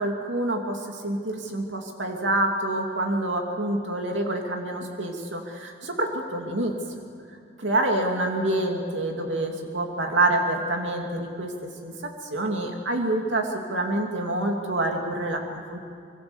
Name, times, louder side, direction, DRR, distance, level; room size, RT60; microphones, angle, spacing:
voice 1, 0.0-7.0 7.6-11.5 11.8-15.8, right 1 dB, 85° right, 2 dB, 2.8 m, -27 dB
25.0 x 24.5 x 7.2 m, 2.5 s
head